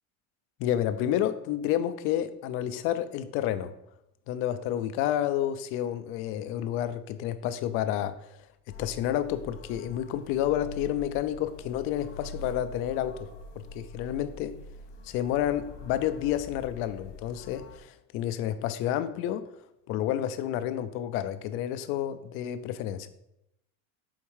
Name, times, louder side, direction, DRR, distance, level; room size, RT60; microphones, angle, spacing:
voice 1, 0.6-3.7 4.3-8.4 8.7-13.3 13.5-14.6 15.0-19.4 19.9-23.1, left 11 dB, 35° left, 12 dB, 0.4 m, -30 dB
sound 1, 8.7-17.8, left 1 dB, 90° left, 1.7 m, -45 dB
7.2 x 4.4 x 4.6 m, 0.84 s
cardioid pair, 160°, 38 cm